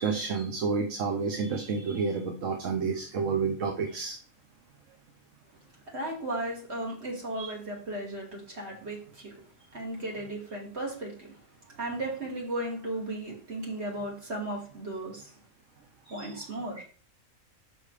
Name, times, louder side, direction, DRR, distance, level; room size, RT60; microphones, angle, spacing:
voice 1, 0.0-4.2 7.4-7.5 16.1-16.3, right 5 dB, 65° right, 1.3 m, -30 dB
voice 2, 5.9-9.4 9.7-11.3 11.8-15.3 16.1-16.8, right 1 dB, 50° right, 2.9 m, -35 dB
6.4 x 5.4 x 4.9 m
omnidirectional pair, 1.5 m